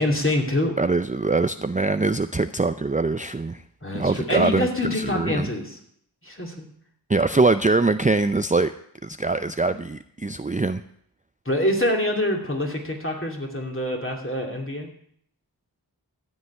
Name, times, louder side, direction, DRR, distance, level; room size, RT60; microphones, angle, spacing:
voice 1, 0.0-0.8 3.8-5.8 6.2-6.7 11.4-14.9, left 1 dB, 30° left, 1 dB, 2.7 m, -25 dB
voice 2, 0.8-3.6 3.9-5.5 7.1-8.7 9.0-10.8, right 3 dB, 20° right, 11 dB, 0.4 m, -23 dB
13.0 x 5.5 x 9.4 m, 0.66 s
wide cardioid pair, 45°, 42 cm